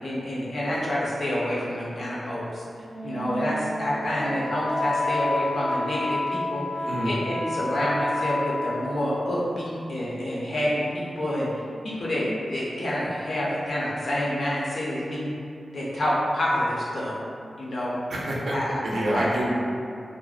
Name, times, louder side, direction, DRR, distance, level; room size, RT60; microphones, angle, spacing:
voice 1, 0.0-2.6 3.0-15.3 15.7-17.2 17.6-17.9 18.5-18.8 19.1-19.5, left 1 dB, 65° left, -7 dB, 0.5 m, -28 dB
Wind instrument woodwind instrument, 2.8-9.1, left 2 dB, 90° left, 0.9 m, -29 dB
voice 2, 18.1-18.5 18.8-19.5, right 1 dB, 80° right, -5 dB, 0.4 m, -26 dB
2.5 x 2.1 x 2.4 m, 2.4 s
wide cardioid pair, 145°, 0 cm